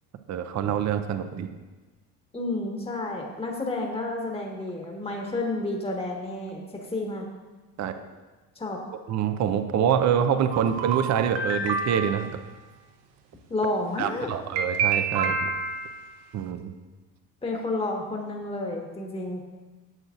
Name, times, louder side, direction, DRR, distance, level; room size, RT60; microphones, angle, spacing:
voice 1, 0.3-1.5 7.8-7.9 9.1-12.3 14.0-15.5 16.3-16.7, right 8 dB, 35° right, 9 dB, 0.6 m, -25 dB
voice 2, 2.3-6.6 6.9-7.2 8.5-8.8 13.5-14.3 17.4-19.4, left 2 dB, 10° left, 0 dB, 1.4 m, -30 dB
sound 1, 10.5-12.4 14.6-16.1, right 5 dB, 55° right, 0.9 m, -28 dB
10.5 x 7.6 x 2.5 m, 1.2 s
hypercardioid pair, 70°, 50 cm